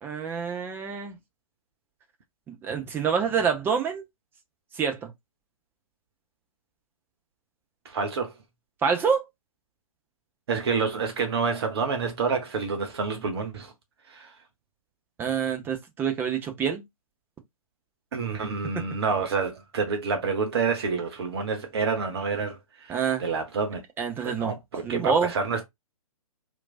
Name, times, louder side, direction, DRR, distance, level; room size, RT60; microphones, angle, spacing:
voice 1, 0.0-1.2 2.5-4.1 4.8-5.1 8.8-9.3 15.2-16.8 22.9-23.2 24.0-24.6 24.8-25.3, right 6 dB, 10° right, 0.6 m, -27 dB
voice 2, 7.8-8.3 10.5-13.7 14.1-14.3 18.1-23.8 24.2-25.7, right 5 dB, 45° right, 0.8 m, -28 dB
4.4 x 2.6 x 2.4 m
figure-of-eight pair, 120°, 19 cm